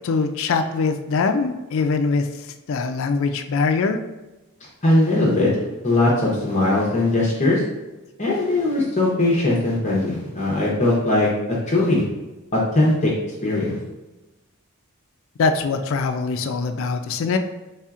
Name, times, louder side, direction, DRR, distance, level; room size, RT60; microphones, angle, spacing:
voice 1, 0.0-2.3 2.7-4.0 15.4-17.4, left 4 dB, 60° left, 7 dB, 0.3 m, -22 dB
voice 2, 4.8-5.5 5.8-7.6 8.2-11.3 11.7-12.0 12.5-13.1 13.4-13.8, left 2 dB, 30° left, -4 dB, 0.7 m, -20 dB
4.3 x 3.3 x 2.4 m, 1.1 s
head